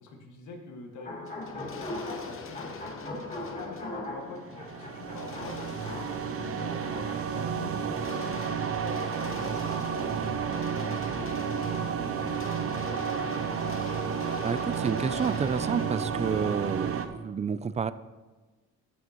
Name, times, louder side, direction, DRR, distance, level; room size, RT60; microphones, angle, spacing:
voice 1, 0.0-1.9 2.2-7.1 7.3-11.3 11.5-13.3, left 3 dB, 75° left, 2 dB, 1.9 m, -44 dB
sound 1, 1.0-7.1, left 1 dB, 25° left, 3.3 m, -40 dB
sound 2, 1.3-16.8, left 5 dB, 45° left, 1.0 m, -45 dB
sound 3, 4.4-17.1, right 7 dB, 50° right, 0.8 m, -31 dB
voice 2, 14.4-17.9, right 6 dB, 25° right, 15 dB, 0.4 m, -30 dB
14.0 x 6.3 x 3.0 m, 1.3 s
cardioid pair, 90°, 30 cm